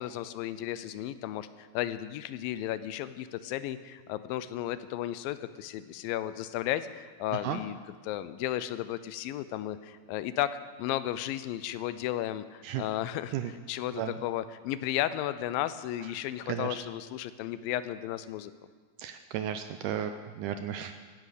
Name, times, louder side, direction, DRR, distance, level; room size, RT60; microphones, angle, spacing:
voice 1, 0.0-7.8 8.0-10.5 10.8-18.5, left 13 dB, 80° left, 14 dB, 2.2 m, -34 dB
voice 2, 19.0-21.0, right 10 dB, 85° right, 8 dB, 1.8 m, -34 dB
16.5 x 10.5 x 6.6 m, 1.5 s
omnidirectional pair, 4.3 m